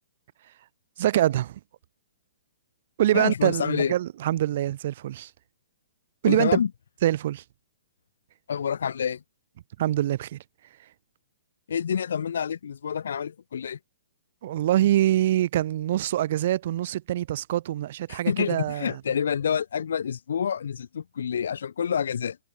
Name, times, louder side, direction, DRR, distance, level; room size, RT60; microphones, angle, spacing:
voice 1, 1.0-1.6 3.0-5.3 6.2-6.6 7.0-7.4 9.8-10.4 14.4-18.9, right 13 dB, 50° right, 0.9 m, -24 dB
voice 2, 3.1-3.9 6.3-6.7 8.5-9.2 11.7-13.8 18.1-22.4, left 7 dB, 75° left, 0.4 m, -28 dB
hypercardioid pair, 160°, 0 cm